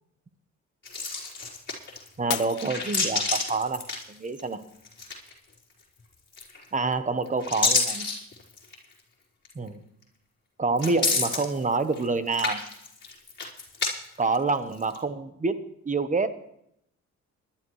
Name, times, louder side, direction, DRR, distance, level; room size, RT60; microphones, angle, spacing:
sound 1, 0.8-2.1 2.5-4.5 4.8-5.5 6.3-6.8 7.2-8.8 9.4-9.5 10.8-12.0 12.3-13.9 14.2-15.0, left 4 dB, 35° left, 4.2 m, -29 dB
voice 1, 2.2-3.8 4.1-4.6 6.7-8.1 9.5-9.8 10.6-12.6 14.2-16.4, right 3 dB, 25° right, 11 dB, 1.1 m, -27 dB
Shatter, 2.3-3.6 4.1-4.6 5.1-5.2, left 14 dB, 90° left, 0.8 m, -35 dB
21.5 x 11.5 x 3.2 m, 0.76 s
cardioid pair, 90°, 30 cm